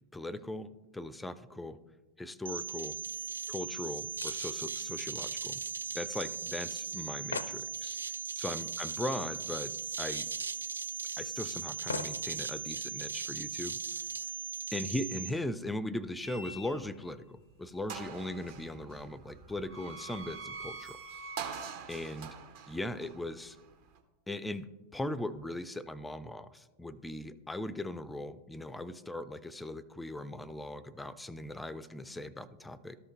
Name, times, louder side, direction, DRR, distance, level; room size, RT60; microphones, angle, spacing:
voice 1, 0.1-1.8 2.2-3.0 3.5-5.6 5.9-8.0 8.4-10.3 11.2-13.8 14.7-21.0 21.9-22.4 22.7-23.6 24.3-33.0, left 1 dB, 5° left, 15 dB, 0.4 m, -39 dB
sound 1, 2.5-15.3, right 5 dB, 75° right, 0.3 m, -38 dB
sound 2, 3.1-3.2 3.5-6.1 6.4-6.5 6.8-6.9 7.1-7.6 9.1-9.2 9.6-9.7 10.3-11.3 11.9-12.3 13.0-13.1, left 4 dB, 75° left, 0.5 m, -43 dB
sound 3, 16.2-17.1 17.5-17.6 17.9-24.0, right 5 dB, 50° right, 1.0 m, -45 dB
13.0 x 5.5 x 3.0 m, 1.1 s
figure-of-eight pair, 90°, 0 cm